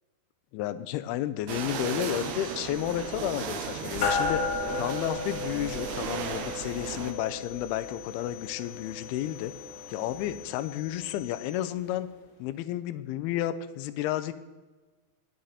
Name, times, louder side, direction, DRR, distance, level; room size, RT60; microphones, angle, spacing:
voice 1, 0.5-4.5 4.7-9.5 9.9-12.1 12.4-14.3, left 13 dB, 85° left, 13 dB, 2.5 m, -32 dB
sound 1, 1.5-11.5, left 18 dB, 55° right, 0.4 m, -49 dB
sound 2, 1.5-7.1, right 8 dB, 80° right, 2.7 m, -36 dB
sound 3, 4.0-11.7, left 4 dB, 60° left, 2.1 m, -35 dB
18.0 x 6.4 x 4.2 m, 1.2 s
omnidirectional pair, 4.5 m